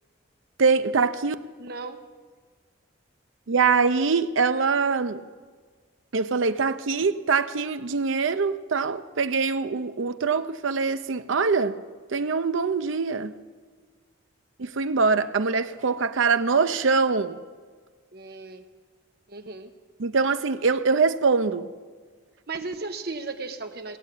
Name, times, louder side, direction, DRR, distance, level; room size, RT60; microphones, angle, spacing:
voice 1, 0.6-1.4 3.5-5.2 6.1-11.8 12.1-13.3 14.6-17.4 20.0-21.7, right 4 dB, 75° right, 0.6 m, -23 dB
voice 2, 1.6-2.1 18.1-18.6 19.3-19.7 22.5-24.0, right 3 dB, 50° right, 1.0 m, -35 dB
18.5 x 7.3 x 9.1 m
head